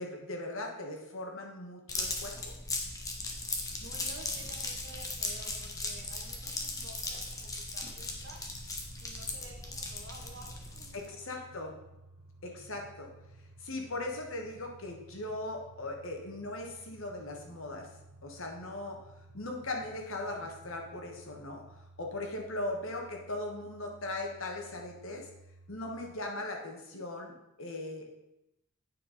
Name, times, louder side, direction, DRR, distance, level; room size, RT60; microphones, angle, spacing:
voice 1, 0.0-2.5 10.9-11.7 12.4-13.1 13.6-17.9 18.2-19.0 19.3-21.6 22.0-25.3 25.7-27.3 27.6-28.1, left 2 dB, 65° left, 2 dB, 1.4 m, -39 dB
sound 1, 1.9-11.1, left 2 dB, 15° left, 0.9 m, -38 dB
voice 2, 3.8-8.4 9.0-11.7 12.5-12.6 13.8-14.0, right 2 dB, 50° right, 1 dB, 1.5 m, -52 dB
sound 2, 7.9-26.2, right 2 dB, 80° right, 1.2 m, -56 dB
9.1 x 4.6 x 5.0 m, 0.88 s
head